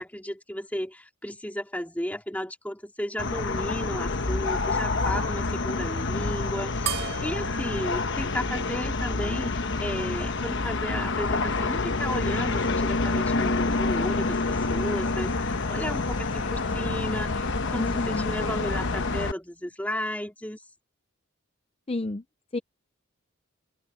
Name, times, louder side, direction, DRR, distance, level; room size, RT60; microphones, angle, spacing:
voice 1, 0.0-20.6, equal, 5° left, 2.7 m, -34 dB
sound 1, 3.2-19.3, left 3 dB, 55° left, 1.2 m, -28 dB
sound 2, 6.9-9.7, right 9 dB, 50° right, 2.4 m, -37 dB
sound 3, 8.5-19.3, left 4 dB, 90° left, 2.5 m, -37 dB
voice 2, 17.8-18.3 21.9-22.2 22.5-22.6, left 2 dB, 25° left, 0.5 m, -30 dB
head